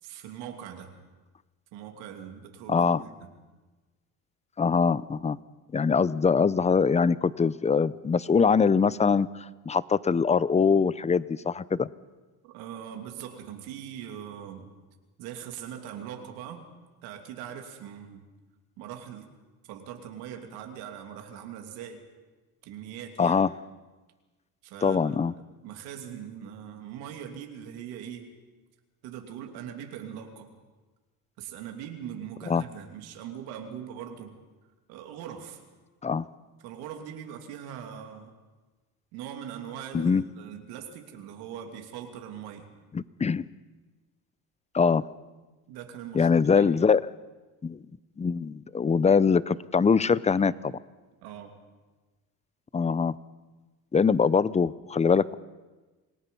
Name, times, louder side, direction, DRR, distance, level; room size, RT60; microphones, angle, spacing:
voice 1, 0.0-0.9 1.7-3.1 12.4-14.7 15.2-16.7 17.0-18.2 18.8-19.3 19.7-22.1 22.6-23.4 24.6-25.2 25.6-28.3 29.0-30.5 31.4-34.4 34.9-35.6 36.6-38.3 39.1-42.7 45.7-46.3 46.6-46.7 51.2-51.6, right 9 dB, 85° right, 4 dB, 2.9 m, -41 dB
voice 2, 2.7-3.0 4.6-5.4 5.7-11.9 23.2-23.5 24.8-25.3 32.5-32.6 36.0-36.3 39.9-40.2 42.9-43.4 44.7-45.0 46.1-47.1 47.6-47.8 48.2-50.8 52.7-53.2 53.9-55.3, left 5 dB, 20° left, 19 dB, 0.6 m, -23 dB
27.5 x 18.0 x 5.5 m, 1.2 s
supercardioid pair, 95°, 37 cm